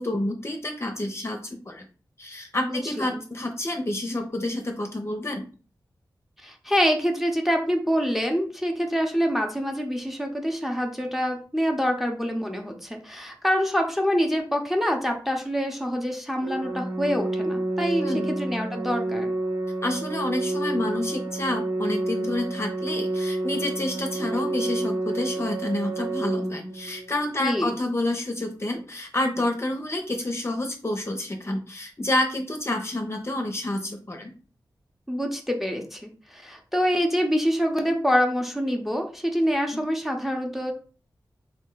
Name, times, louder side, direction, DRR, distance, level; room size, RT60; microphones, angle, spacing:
voice 1, 0.0-1.9 2.2-5.4 18.0-18.3 19.8-34.3, left 1 dB, 35° left, 3 dB, 0.7 m, -29 dB
voice 2, 2.6-3.2 6.4-19.3 27.4-27.8 35.1-40.7, equal, 5° right, 2 dB, 0.8 m, -26 dB
Organ, 16.4-27.4, right 2 dB, 55° right, 0.9 m, -29 dB
3.5 x 2.1 x 3.8 m, 0.37 s
cardioid pair, 50°, 8 cm